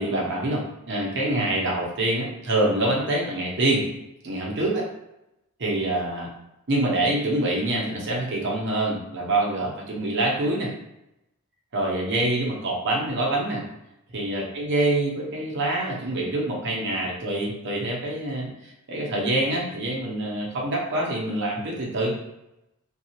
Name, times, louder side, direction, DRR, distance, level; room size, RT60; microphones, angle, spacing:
voice 1, 0.0-3.8 4.2-4.9 5.6-6.3 6.7-10.7 11.7-13.6 14.1-22.2, right 1 dB, 55° right, -2 dB, 0.8 m, -25 dB
2.6 x 2.4 x 2.8 m, 0.89 s
head